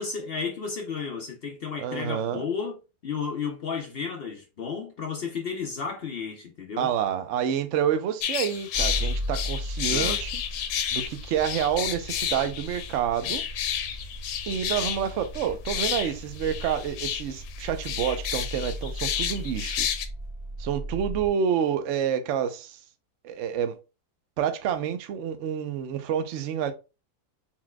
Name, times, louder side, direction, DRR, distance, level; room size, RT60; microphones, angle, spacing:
voice 1, 0.0-2.8 3.0-6.9 9.9-10.2, left 5 dB, 60° left, 0.6 m, -33 dB
voice 2, 1.8-2.4 6.8-10.3 10.9-13.4 14.5-19.9 20.6-22.8 23.2-23.8 24.4-26.7, right 8 dB, 65° right, 0.8 m, -28 dB
sound 1, 8.2-20.1, left 9 dB, 80° left, 1.2 m, -31 dB
sound 2, 8.7-21.3, equal, 25° right, 1.4 m, -36 dB
4.5 x 4.0 x 2.2 m
omnidirectional pair, 1.8 m